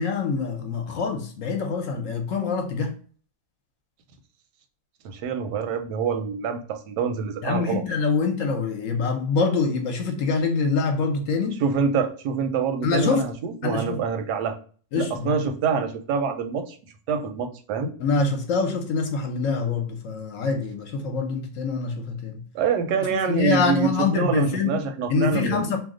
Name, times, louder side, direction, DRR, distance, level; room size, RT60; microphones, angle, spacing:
voice 1, 0.0-2.9 7.4-11.6 12.8-13.2 13.6-14.0 14.9-15.3 18.0-22.4 23.3-24.8 25.1-25.8, left 4 dB, 60° left, 0.9 m, -25 dB
voice 2, 5.0-7.8 11.6-14.6 14.9-16.8 17.1-17.9 22.5-25.8, right 6 dB, 90° right, 1.2 m, -26 dB
2.8 x 2.1 x 3.6 m
omnidirectional pair, 1.7 m